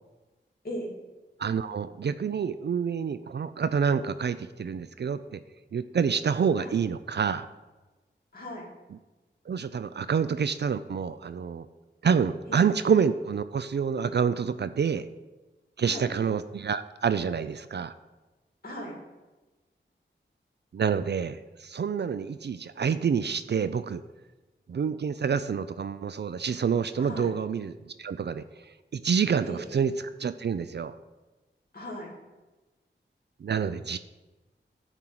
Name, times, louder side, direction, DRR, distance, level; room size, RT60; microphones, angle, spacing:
voice 1, 1.4-5.4 5.7-7.5 9.5-11.7 12.0-15.1 15.8-17.9 20.7-24.0 24.7-31.0 33.4-34.0, right 6 dB, 60° right, 12 dB, 0.4 m, -28 dB
voice 2, 8.3-8.7 12.5-12.6 15.8-16.1 18.6-18.9 27.0-27.3 29.4-29.7 31.7-32.1, equal, 50° left, -4 dB, 2.4 m, -38 dB
10.5 x 4.5 x 7.9 m, 1.1 s
wide cardioid pair, 90°, 20 cm